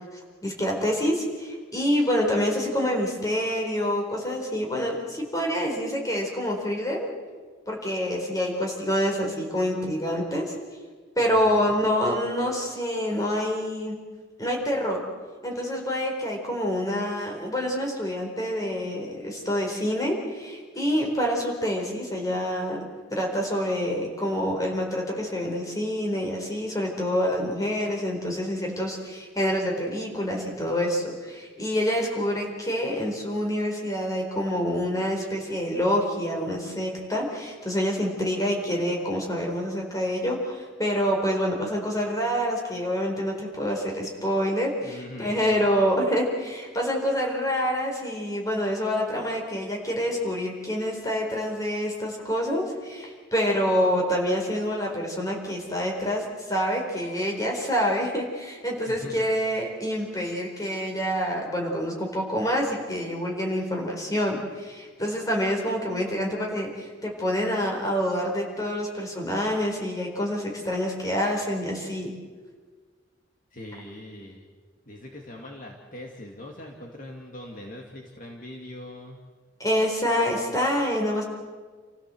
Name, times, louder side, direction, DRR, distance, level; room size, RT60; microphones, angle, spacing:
voice 1, 0.4-7.1 7.7-10.5 11.2-14.0 14.4-15.1 15.4-22.8 23.1-72.1 79.6-81.2, equal, 20° left, 0 dB, 4.5 m, -27 dB
voice 2, 11.2-11.8 44.8-45.7 58.9-59.3 73.5-74.5 74.9-79.2, left 1 dB, 45° left, 0 dB, 2.4 m, -42 dB
29.0 x 16.0 x 7.9 m, 1.5 s
head